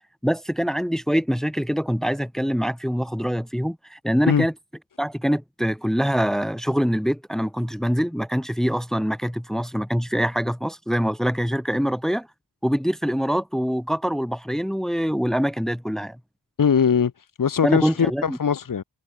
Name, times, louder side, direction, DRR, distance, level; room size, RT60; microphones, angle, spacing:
voice 1, 0.2-4.5 5.0-12.3 12.6-16.2 17.6-18.4, equal, ahead, 1.8 m, -24 dB
voice 2, 16.6-18.8, left 7 dB, 50° left, 2.0 m, -21 dB
wide cardioid pair, 150°, 43 cm